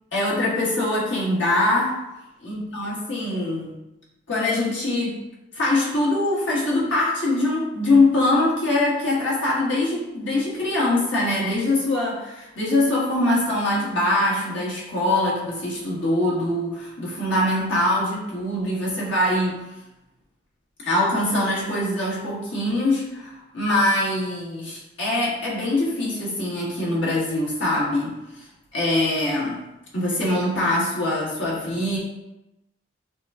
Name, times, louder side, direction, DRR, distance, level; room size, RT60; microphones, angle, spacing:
voice 1, 0.1-1.9 2.4-3.7 4.3-5.2 5.5-19.6 20.8-28.5 28.7-29.6 29.9-32.0, left 1 dB, 80° left, -6 dB, 1.5 m, -23 dB
5.9 x 2.3 x 3.6 m, 0.96 s
head